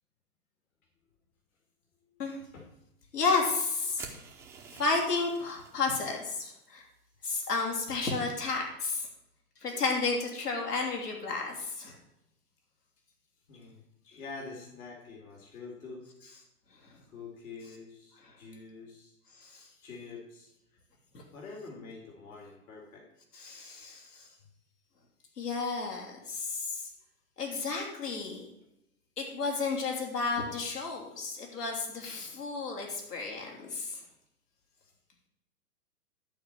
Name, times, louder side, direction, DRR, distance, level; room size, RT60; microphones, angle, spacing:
voice 1, 3.1-4.1 4.7-6.8 7.2-9.1 9.6-12.0 14.1-14.2 16.8-16.9 19.3-19.7 21.1-21.2 23.3-24.3 25.4-26.9 27.4-28.5 29.2-34.0, left 4 dB, 80° left, 0 dB, 3.2 m, -32 dB
sound 1, 4.0-6.2, right 5 dB, 5° right, 0.5 m, -49 dB
voice 2, 13.5-13.8 14.1-16.0 17.1-19.1 19.8-20.8 21.3-23.1, left 4 dB, 65° left, -1 dB, 2.8 m, -46 dB
11.5 x 4.3 x 7.7 m, 0.86 s
hypercardioid pair, 125°, 46 cm